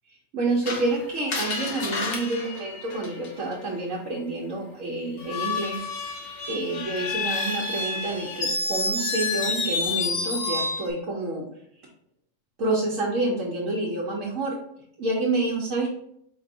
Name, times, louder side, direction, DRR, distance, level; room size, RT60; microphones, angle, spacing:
voice 1, 0.3-11.5 12.6-14.6 15.0-15.9, right 2 dB, 70° right, -4 dB, 1.3 m, -28 dB
Screech, 0.7-3.5 5.2-10.9, left 3 dB, 50° left, 1.0 m, -29 dB
5.1 x 2.6 x 4.0 m, 0.70 s
omnidirectional pair, 1.4 m